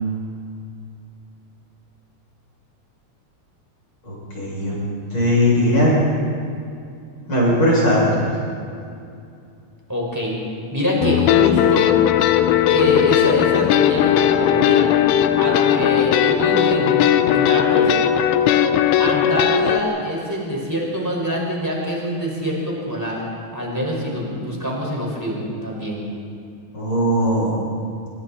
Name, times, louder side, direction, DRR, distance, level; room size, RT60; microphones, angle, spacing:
voice 1, 4.1-4.7 5.1-5.9 7.3-8.3 26.7-27.6, equal, 25° left, -5 dB, 8.0 m, -18 dB
voice 2, 9.9-10.3 10.7-11.9 12.7-14.9 15.4-17.9 19.0-23.2 23.5-26.0, equal, 5° right, -3 dB, 5.1 m, -24 dB
sound 1, 11.0-19.8, left 10 dB, 90° left, 3.4 m, -17 dB
25.5 x 25.5 x 4.4 m, 2.5 s
omnidirectional pair, 5.8 m